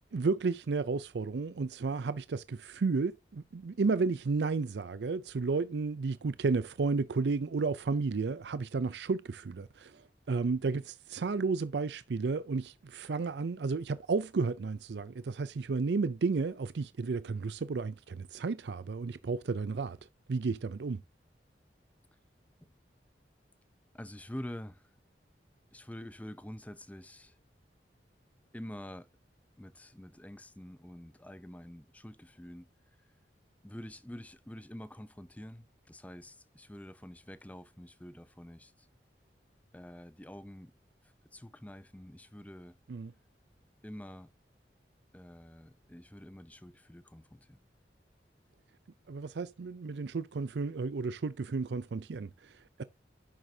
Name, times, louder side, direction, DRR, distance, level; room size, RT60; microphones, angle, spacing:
voice 1, 0.1-10.0 10.3-20.0 20.3-21.0 42.9-43.1 49.1-52.8, right 4 dB, 75° right, 0.5 m, -32 dB
voice 2, 23.9-24.9 25.7-27.4 28.5-29.1 29.6-32.7 33.6-38.9 39.7-40.7 41.0-42.8 43.8-44.3 45.1-47.6, left 1 dB, 10° left, 0.6 m, -47 dB
10.0 x 7.5 x 2.7 m
head